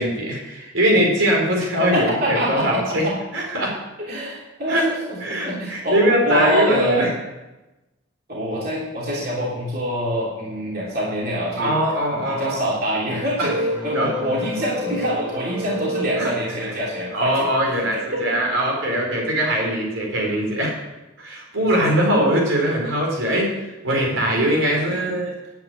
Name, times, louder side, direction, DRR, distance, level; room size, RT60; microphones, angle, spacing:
voice 1, 0.0-3.0 3.3-3.7 4.7-4.8 5.2-7.1 11.6-12.7 13.4-13.5 13.9-14.1 16.2-16.3 17.1-20.7 21.2-25.3, equal, 85° right, -1 dB, 4.7 m, -21 dB
voice 2, 1.8-3.2 4.1-7.2 8.3-11.8 12.1-17.5 18.1-18.4 21.6-21.7, equal, 50° right, -4 dB, 3.1 m, -25 dB
sound 1, 13.4-18.5, equal, 20° right, 2.4 m, -30 dB
10.5 x 8.4 x 9.0 m, 1.0 s
head